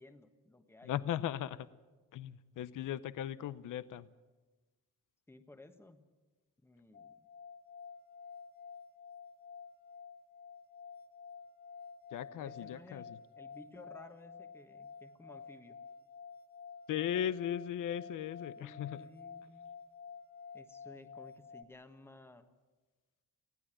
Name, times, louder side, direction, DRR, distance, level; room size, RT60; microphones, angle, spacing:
voice 1, 0.0-1.0 5.3-6.0 6.6-7.3 12.3-15.8 18.6-19.6 20.5-22.5, left 2 dB, 5° left, 8 dB, 1.3 m, -56 dB
voice 2, 0.8-1.7 2.1-4.1 12.1-13.0 16.9-19.0, left 10 dB, 70° left, 16 dB, 0.7 m, -37 dB
sound 1, 6.9-21.6, left 6 dB, 30° left, 0.8 m, -51 dB
20.0 x 15.5 x 9.1 m, 1.2 s
cardioid pair, 115°, 33 cm